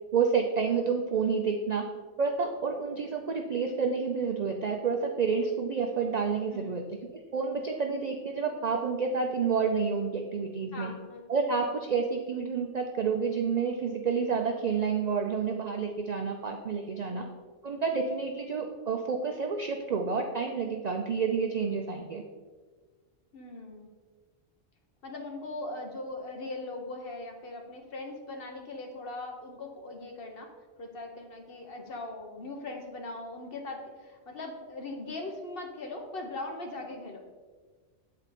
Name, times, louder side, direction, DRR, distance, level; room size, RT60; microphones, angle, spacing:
voice 1, 0.1-1.8 2.2-6.8 7.3-10.9 11.3-17.2 17.6-22.2, right 5 dB, 60° right, 3 dB, 0.4 m, -29 dB
voice 2, 10.7-11.2 17.1-17.2 23.3-23.9 25.0-30.5 30.8-37.3, left 2 dB, 50° left, 2 dB, 1.1 m, -40 dB
8.1 x 4.3 x 4.1 m, 1.4 s
omnidirectional pair, 1.3 m